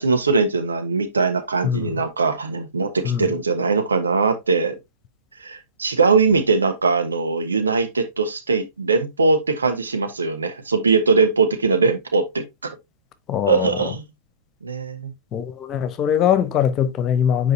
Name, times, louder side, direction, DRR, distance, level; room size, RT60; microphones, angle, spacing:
voice 1, 0.0-4.8 5.4-12.7 13.5-14.1 14.6-15.1, right 4 dB, 75° right, 1.4 m, -21 dB
voice 2, 1.6-2.0 3.0-3.3 13.3-13.9 15.3-17.5, left 9 dB, 30° left, 1.0 m, -22 dB
8.1 x 4.8 x 2.8 m
figure-of-eight pair, 90°, 0 cm